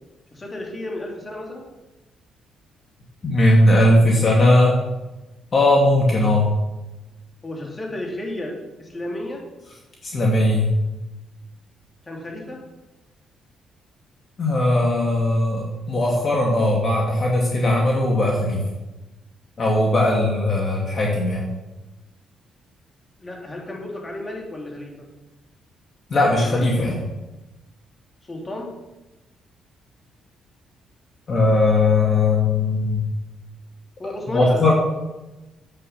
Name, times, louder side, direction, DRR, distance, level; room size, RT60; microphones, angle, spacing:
voice 1, 0.3-1.7 7.4-8.5 8.8-9.4 12.1-12.6 23.2-25.1 28.3-28.7 34.0-34.7, left 1 dB, 25° left, -1 dB, 3.1 m, -32 dB
voice 2, 3.2-4.8 5.5-6.5 10.0-10.7 14.4-18.6 19.6-21.5 26.1-27.0 31.3-33.0 34.3-34.7, left 1 dB, 40° left, -2 dB, 2.4 m, -18 dB
9.9 x 8.5 x 5.8 m, 1.0 s
cardioid pair, 90°, 0 cm